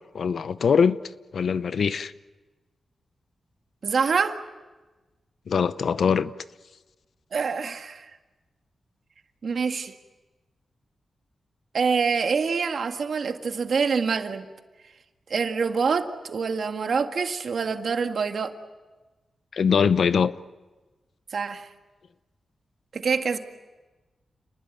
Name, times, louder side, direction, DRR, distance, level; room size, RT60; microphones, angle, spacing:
voice 1, 0.1-1.0 1.3-2.1 5.5-6.3 19.5-20.3, left 6 dB, 65° left, 0.8 m, -22 dB
voice 2, 3.8-4.4 7.3-8.1 9.4-9.9 11.7-14.5 15.3-18.5 21.3-21.7 22.9-23.4, right 5 dB, 60° right, 1.9 m, -26 dB
29.5 x 20.5 x 9.2 m
wide cardioid pair, 130°, 0 cm